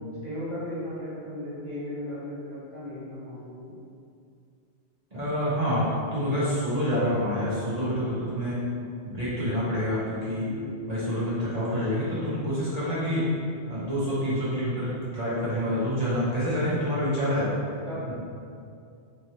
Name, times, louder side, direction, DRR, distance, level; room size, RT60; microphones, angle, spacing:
voice 1, 0.2-3.7 10.4-11.0 17.9-18.2, left 1 dB, 30° left, -12 dB, 0.8 m, -36 dB
voice 2, 5.1-5.8 6.1-8.6 9.0-10.5 10.9-13.2 13.7-17.4, equal, 40° right, -11 dB, 1.0 m, -27 dB
3.6 x 3.1 x 2.8 m, 2.5 s
omnidirectional pair, 1.1 m